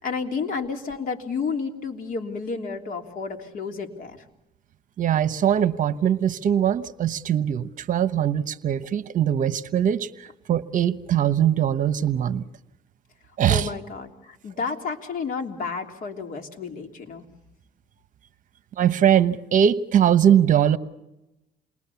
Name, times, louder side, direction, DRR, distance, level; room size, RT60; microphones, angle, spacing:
voice 1, 0.0-4.2 13.5-17.2, left 5 dB, 55° left, 3.2 m, -31 dB
voice 2, 5.0-12.4 13.4-13.7 18.8-20.8, right 9 dB, 50° right, 1.0 m, -21 dB
28.5 x 22.0 x 7.1 m
cardioid pair, 110°, 17 cm